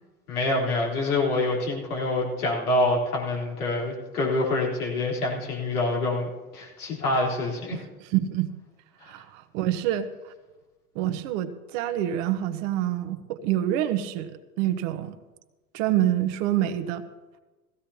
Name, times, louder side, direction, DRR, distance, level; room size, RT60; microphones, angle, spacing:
voice 1, 0.3-7.8, left 2 dB, 80° left, -4 dB, 3.9 m, -26 dB
voice 2, 7.7-8.5 9.0-10.3 10.9-14.3 14.6-15.2 15.7-17.0, right 12 dB, 55° right, 8 dB, 1.1 m, -27 dB
16.5 x 15.5 x 2.8 m, 1.2 s
hypercardioid pair, 90°, 45 cm